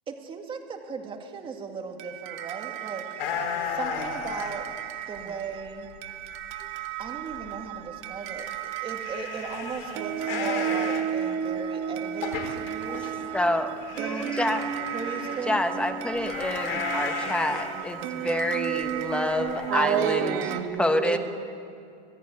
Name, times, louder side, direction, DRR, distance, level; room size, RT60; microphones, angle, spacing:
voice 1, 0.1-3.0 3.6-4.7 5.1-5.9 7.0-8.5 8.8-13.2 13.9-14.4 14.9-15.6, right 5 dB, 15° right, 3 dB, 2.3 m, -37 dB
sound 1, 2.0-20.6, right 9 dB, 40° right, 1.6 m, -34 dB
sound 2, 3.2-4.6 5.2-6.1 6.4-6.5 7.0-7.1 7.3-7.5 7.7-7.8 8.4-8.5 8.8-13.4 13.8-15.5 16.1-18.5 18.8-18.9 19.5-20.1, left 6 dB, 70° left, 4.5 m, -35 dB
voice 2, 13.3-14.8 15.5-20.4 20.8-21.2, left 1 dB, 5° left, 6 dB, 1.2 m, -27 dB
voice 3, 19.7-21.2, right 9 dB, 75° right, 0 dB, 2.4 m, -27 dB
26.5 x 16.5 x 9.6 m, 2.5 s
supercardioid pair, 160°, 29 cm